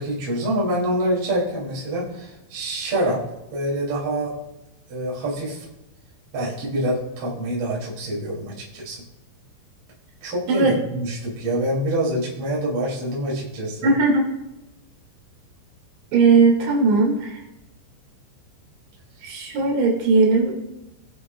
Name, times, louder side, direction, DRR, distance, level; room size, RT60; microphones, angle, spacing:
voice 1, 0.0-3.2 3.5-4.3 4.9-5.6 6.3-9.0 10.2-13.9 19.6-19.7, right 1 dB, 30° right, -5 dB, 3.1 m, -26 dB
voice 2, 13.8-14.2 16.1-17.3 19.2-20.5, right 4 dB, 75° right, -2 dB, 4.6 m, -18 dB
21.5 x 7.6 x 2.4 m, 0.96 s
omnidirectional pair, 5.4 m